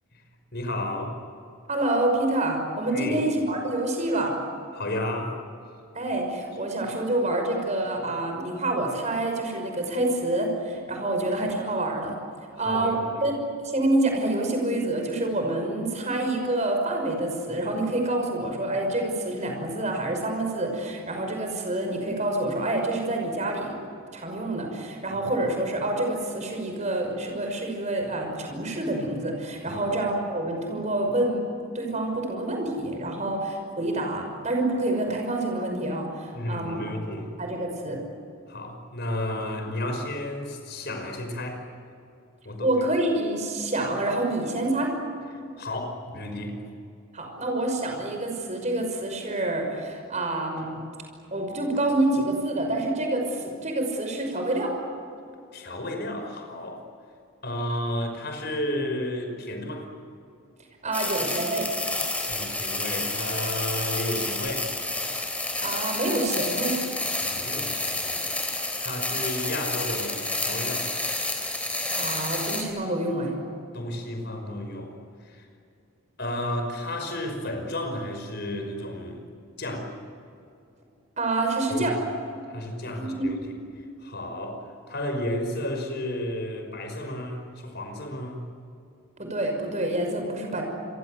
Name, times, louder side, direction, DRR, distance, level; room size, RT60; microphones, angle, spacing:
voice 1, 0.5-1.1 2.9-3.2 4.7-5.4 12.5-13.2 29.6-29.9 36.3-37.4 38.5-41.6 42.5-42.7 45.6-46.6 55.5-56.8 57.4-59.9 62.3-64.7 67.2-68.3 68.8-70.9 73.7-74.9 75.2-75.5 76.2-79.2 79.6-79.9 81.7-81.9 82.5-83.4 84.0-88.4, left 1 dB, 55° left, 4 dB, 5.5 m, -32 dB
voice 2, 1.7-4.3 5.9-12.2 12.6-13.3 13.6-23.8 24.1-31.4 31.7-36.9 37.4-38.0 42.6-44.9 47.1-50.8 51.3-54.7 60.8-61.7 65.6-66.8 71.9-73.3 81.2-81.9 82.9-83.3 89.2-90.6, right 2 dB, 35° right, 3 dB, 6.0 m, -27 dB
sound 1, 60.9-72.6, left 2 dB, 5° left, 4.0 m, -29 dB
28.5 x 23.5 x 8.0 m, 2.5 s
head